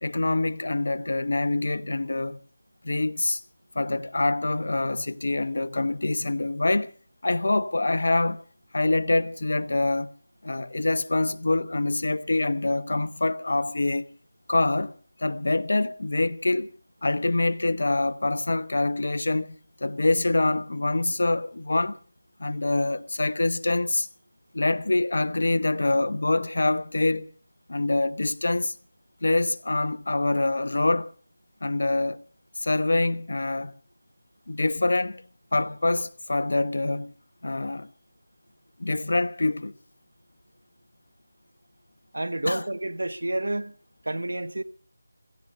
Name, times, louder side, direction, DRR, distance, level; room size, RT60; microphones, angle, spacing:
voice 1, 0.0-2.4 2.8-3.4 3.7-6.9 7.2-8.4 8.7-10.1 10.4-14.0 14.5-14.9 15.2-16.7 17.0-22.0 22.4-24.1 24.5-27.3 27.7-28.7 29.2-31.1 31.6-32.2 32.6-33.7 34.5-35.2 35.5-37.1 37.4-37.9 38.8-39.7 42.4-42.6, left 2 dB, 65° left, 1.0 m, -25 dB
voice 2, 42.1-43.7 44.0-44.6, right 1 dB, 85° right, 1.2 m, -29 dB
17.0 x 14.5 x 5.5 m
figure-of-eight pair, 170°, 0 cm